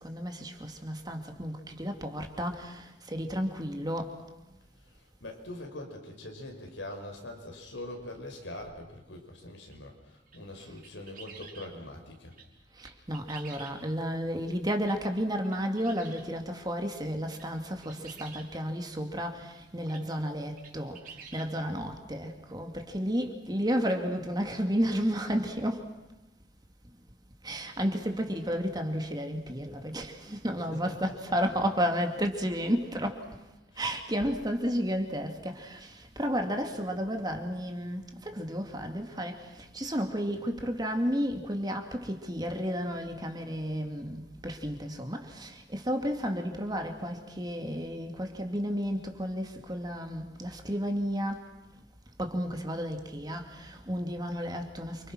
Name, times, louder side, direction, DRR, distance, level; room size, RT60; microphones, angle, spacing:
voice 1, 0.0-4.1 12.8-21.0 21.3-25.8 27.4-33.2 33.8-39.4 39.7-51.4 52.2-55.1, equal, 20° right, 2.4 m, -32 dB
voice 2, 4.8-12.3 30.5-31.4 33.7-33.9, left 1 dB, 85° left, 5.7 m, -43 dB
sound 1, 9.7-9.8 10.3-11.7 12.3-12.5 12.8-14.1 14.8-15.0 15.4-16.3 17.1-17.5 17.8-18.5 19.6-19.7 19.9-20.1 20.6-21.5, right 6 dB, 50° right, 5.2 m, -49 dB
29.0 x 26.5 x 6.2 m
head